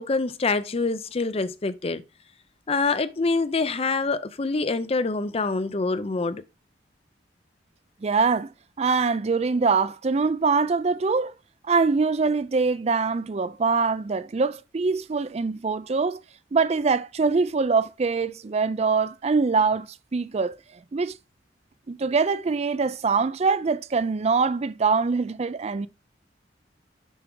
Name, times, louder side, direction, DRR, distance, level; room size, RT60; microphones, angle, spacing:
voice 1, 0.0-2.0 2.7-6.4, left 3 dB, 35° left, 0.5 m, -25 dB
voice 2, 8.0-11.3 11.7-16.2 16.5-20.6 20.9-21.2 21.9-25.9, right 4 dB, 35° right, 0.4 m, -23 dB
7.0 x 5.8 x 3.8 m
head